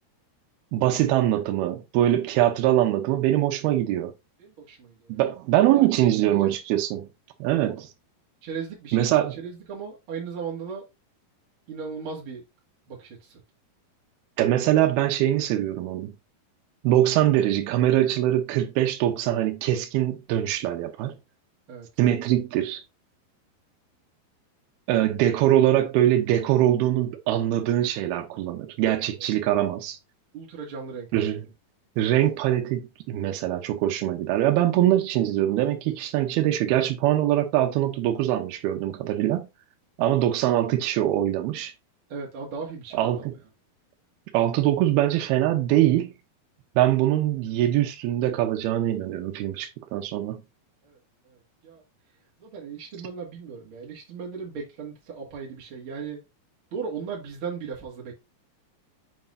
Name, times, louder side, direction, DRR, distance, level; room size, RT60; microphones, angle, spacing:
voice 1, 0.7-4.1 5.1-7.1 7.4-7.9 8.9-9.4 14.4-16.1 16.8-21.2 22.0-22.8 24.9-30.0 31.1-31.4 32.0-39.5 40.0-41.7 42.9-43.3 44.3-46.1 46.8-50.4, right 13 dB, 80° right, 2.7 m, -23 dB
voice 2, 4.4-5.2 5.7-6.5 7.6-7.8 8.4-10.8 11.7-12.4 12.9-13.4 21.7-21.9 29.2-29.3 30.3-31.1 42.1-43.3 50.8-51.0 51.2-51.8 52.4-56.2 56.7-58.1, right 5 dB, 40° right, 2.2 m, -37 dB
7.6 x 4.8 x 2.6 m
omnidirectional pair, 4.5 m